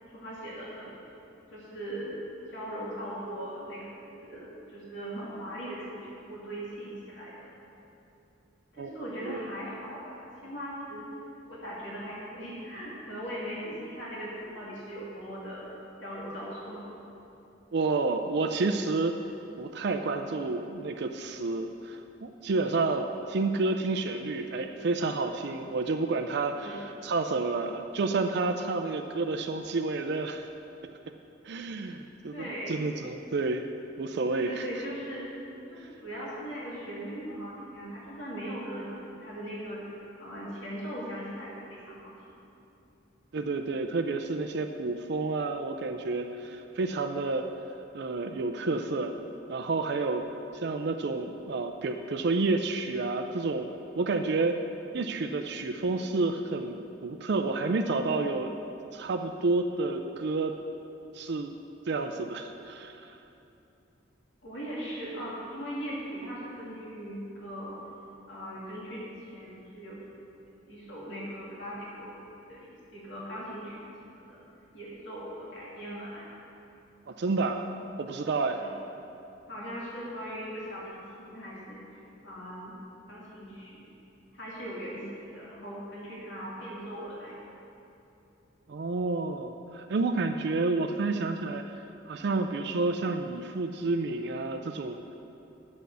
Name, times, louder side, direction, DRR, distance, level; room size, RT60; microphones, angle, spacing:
voice 1, 0.1-1.0 1.5-2.2 2.5-3.8 4.2-7.5 8.7-11.1 11.5-15.6 16.0-16.8 26.5-26.9 32.3-32.9 34.3-35.2 35.7-39.8 40.2-42.4 64.4-67.8 68.3-69.0 69.3-70.0 70.7-72.1 72.5-74.4 74.7-76.3 78.6-78.7 79.5-82.7 83.1-83.8 84.3-87.4, equal, 70° left, -7 dB, 2.5 m, -39 dB
voice 2, 17.7-19.2 19.6-30.4 31.4-32.4 32.7-33.7 34.0-34.7 35.8-35.9 43.3-47.5 47.9-49.2 49.5-50.3 50.5-53.7 54.0-54.6 54.9-58.6 58.9-60.6 61.1-61.5 61.9-63.2 77.1-77.7 78.0-78.6 88.7-91.7 92.1-95.0, right 3 dB, 60° right, 6 dB, 0.4 m, -30 dB
9.6 x 6.3 x 6.7 m, 2.8 s
head